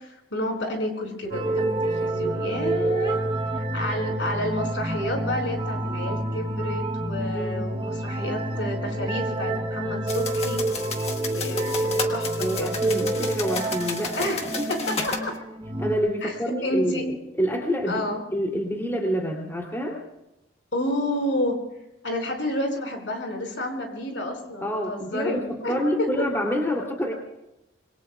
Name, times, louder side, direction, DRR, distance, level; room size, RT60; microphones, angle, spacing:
voice 1, 0.0-3.2 3.5-10.6 11.3-12.8 14.2-14.4 14.7-15.3 16.2-16.3 16.6-17.1 17.9-18.2 20.7-21.6 22.0-25.7 26.0-26.1, left 1 dB, 70° left, 3 dB, 5.2 m, -30 dB
sound 1, 1.3-16.0, right 2 dB, 25° right, 1.1 m, -28 dB
sound 2, 10.1-15.3, left 4 dB, 30° left, 1.7 m, -33 dB
voice 2, 12.4-14.6 15.8-18.1 18.3-20.0 24.6-27.1, equal, 15° left, 1 dB, 2.8 m, -27 dB
26.5 x 22.5 x 2.3 m, 0.90 s
head